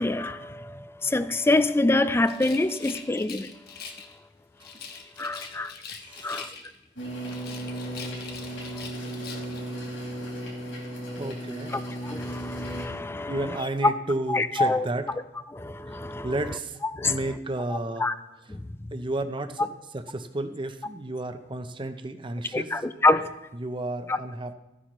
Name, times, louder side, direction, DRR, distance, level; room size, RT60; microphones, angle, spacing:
voice 1, 0.0-3.5 5.2-5.7 6.2-6.5 8.7-8.9 12.0-13.4 13.8-13.9 14.3-14.8 15.5-16.3 17.0-17.2 18.0-18.1 18.5-18.6 22.5-23.3 24.1-24.2, left 2 dB, 15° left, 0.3 m, -25 dB
Rattle, 2.2-4.1 4.6-6.9 7.2-9.7, left 6 dB, 55° left, 1.1 m, -42 dB
voice 2, 6.0-6.5 11.2-11.8 13.3-15.1 15.9-16.8 17.1-18.1 18.9-19.7 19.9-22.7 23.5-24.5, right 2 dB, 25° right, 0.6 m, -32 dB
sound 1, 7.0-12.9, right 1 dB, 80° left, 4.5 m, -35 dB
14.5 x 10.0 x 3.1 m
head